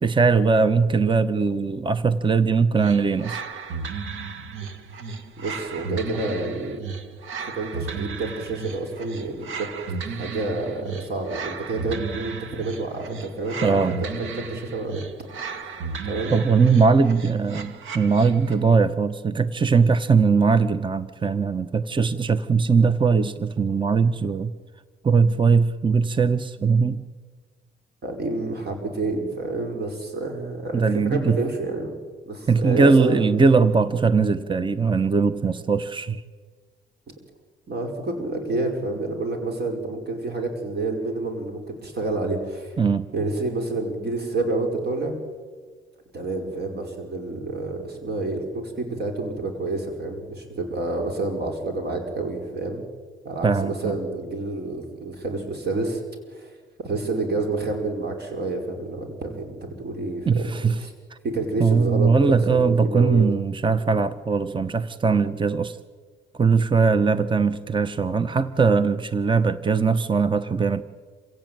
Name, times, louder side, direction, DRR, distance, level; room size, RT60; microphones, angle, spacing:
voice 1, 0.0-3.4 13.6-13.9 16.3-24.5 25.0-27.0 30.7-31.4 32.5-36.2 42.8-43.0 53.4-53.9 60.3-60.8 61.6-65.8 66.4-70.8, right 5 dB, 25° right, 13 dB, 1.0 m, -20 dB
sound 1, 2.8-18.7, right 5 dB, 80° right, 1.9 m, -34 dB
voice 2, 5.4-6.8 7.5-9.7 10.0-15.0 15.5-16.4 28.0-32.0 32.3-33.3 37.7-42.7 43.1-45.1 46.1-52.8 53.2-56.0 56.3-56.5 56.8-60.9 61.2-63.3, right 2 dB, 55° right, 3 dB, 5.3 m, -29 dB
27.5 x 16.5 x 9.2 m, 1.5 s
cardioid pair, 90°, 20 cm